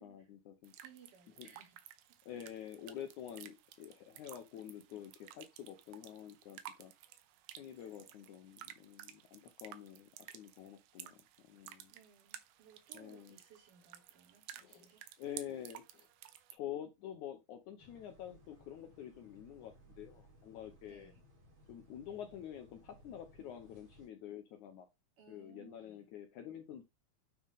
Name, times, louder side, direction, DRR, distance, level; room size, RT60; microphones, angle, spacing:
voice 1, 0.0-0.7 1.4-1.5 2.3-6.9 7.6-11.9 12.9-13.4 14.6-14.9 15.2-16.1 16.5-21.1 21.7-24.9 25.3-26.8, left 10 dB, 70° left, 1.9 m, -48 dB
sound 1, 0.6-16.6, right 12 dB, 85° right, 2.7 m, -54 dB
voice 2, 0.7-1.8 7.8-8.2 11.9-15.0 20.8-21.2 25.2-26.1, right 6 dB, 60° right, 4.5 m, -62 dB
sound 2, 17.8-24.1, equal, 40° right, 4.2 m, -62 dB
9.4 x 4.3 x 3.6 m
omnidirectional pair, 4.3 m